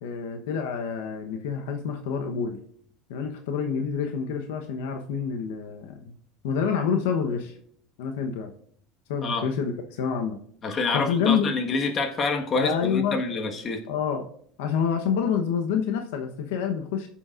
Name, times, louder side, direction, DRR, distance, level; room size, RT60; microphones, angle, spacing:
voice 1, 0.0-2.6 3.1-6.1 6.4-7.5 8.0-8.5 9.1-10.4 10.9-11.5 12.5-13.2 13.9-14.3 14.6-17.1, left 7 dB, 85° left, 5 dB, 1.0 m, -27 dB
voice 2, 10.6-13.8, left 3 dB, 35° left, 4 dB, 1.5 m, -27 dB
18.0 x 7.0 x 2.5 m, 0.63 s
supercardioid pair, 120°, 0 cm